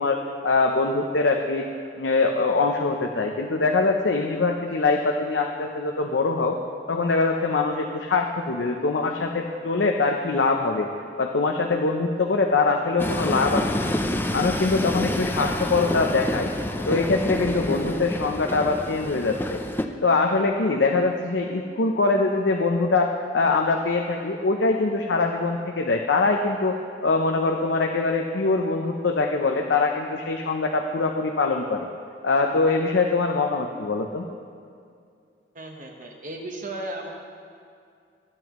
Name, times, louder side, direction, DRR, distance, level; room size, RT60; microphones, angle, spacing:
voice 1, 0.0-1.7 2.0-6.6 6.9-10.9 11.2-14.0 14.3-16.5 16.9-19.6 20.0-26.8 27.0-31.9 32.2-34.3, left 3 dB, 80° left, 2 dB, 0.7 m, -23 dB
Train, 13.0-19.9, left 1 dB, 10° left, 0.5 m, -28 dB
voice 2, 35.5-37.1, right 1 dB, 50° right, 2 dB, 1.2 m, -35 dB
24.0 x 9.1 x 3.1 m, 2.3 s
head